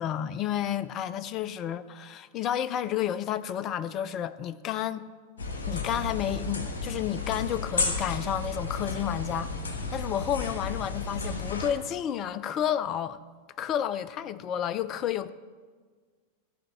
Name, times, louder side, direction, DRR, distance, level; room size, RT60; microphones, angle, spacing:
voice 1, 0.0-5.1 5.7-13.2 13.6-15.3, left 10 dB, 35° left, 0.4 m, -31 dB
sound 1, 5.4-11.7, left 3 dB, 65° left, 1.3 m, -33 dB
14.0 x 5.1 x 7.1 m
figure-of-eight pair, 90°, 0 cm